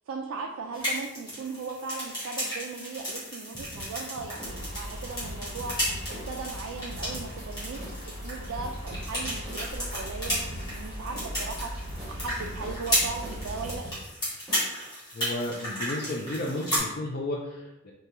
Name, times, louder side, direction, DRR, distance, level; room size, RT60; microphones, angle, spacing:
voice 1, 0.1-5.8 6.1-13.8, right 4 dB, 65° right, 2 dB, 0.3 m, -38 dB
sound 1, 0.7-16.8, equal, 20° left, 1.3 m, -34 dB
sound 2, 3.5-6.6 6.9-7.5 7.8-7.9 8.2-10.0 10.3-10.8 11.1-14.1 14.5-14.7, equal, ahead, 0.8 m, -43 dB
sound 3, 4.4-13.8, equal, 80° left, 0.8 m, -39 dB
voice 2, 15.1-17.9, left 1 dB, 45° left, -1 dB, 0.4 m, -33 dB
4.8 x 2.2 x 2.8 m, 0.96 s
head